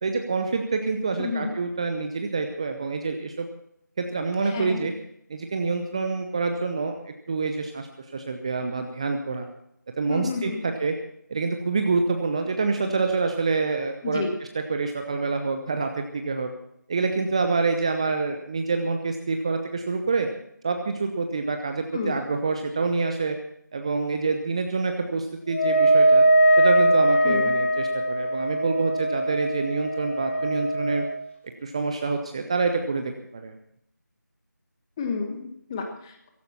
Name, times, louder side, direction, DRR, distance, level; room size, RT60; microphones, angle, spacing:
voice 1, 0.0-3.5 4.0-4.9 5.3-7.9 8.1-9.5 10.0-10.9 11.3-14.2 14.7-16.5 16.9-20.3 20.6-23.4 23.7-26.2 26.6-31.1 31.6-33.5, right 4 dB, 20° right, 5 dB, 0.8 m, -27 dB
voice 2, 1.2-1.5 4.4-4.9 10.1-10.6 14.0-14.3 21.9-22.2 27.2-27.6 35.0-36.3, left 4 dB, 15° left, 4 dB, 1.4 m, -31 dB
Wind instrument woodwind instrument, 25.5-31.2, right 1 dB, 40° left, 2.5 m, -21 dB
17.0 x 16.0 x 4.3 m, 0.74 s
figure-of-eight pair, 165°, 10 cm